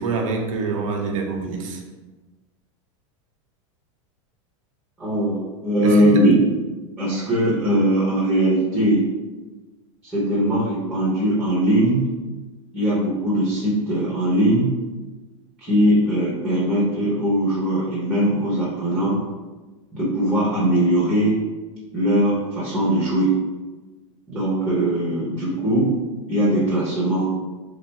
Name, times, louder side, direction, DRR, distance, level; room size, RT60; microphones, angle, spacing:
voice 1, 0.0-1.8 5.8-6.2, right 4 dB, 80° right, 2 dB, 0.7 m, -26 dB
voice 2, 5.0-6.3 7.0-9.0 10.0-12.0 12.7-14.7 15.6-19.2 19.9-21.4 21.9-23.3 24.3-26.0 26.3-27.3, right 1 dB, ahead, -10 dB, 0.7 m, -20 dB
3.3 x 2.4 x 4.1 m, 1.2 s
supercardioid pair, 175°, 17 cm